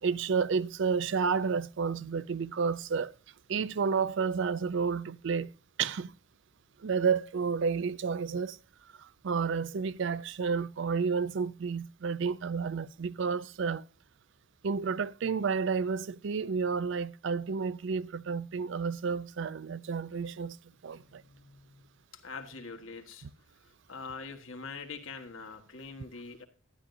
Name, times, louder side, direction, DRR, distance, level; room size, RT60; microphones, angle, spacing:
voice 1, 0.0-3.1 3.5-5.5 5.8-6.1 6.8-8.6 9.0-13.8 14.6-20.6 20.8-21.2, right 5 dB, 65° right, 0.4 m, -31 dB
voice 2, 20.9-21.8 22.2-23.3 23.6-26.4, left 4 dB, 90° left, 1.5 m, -44 dB
12.5 x 10.5 x 2.7 m
head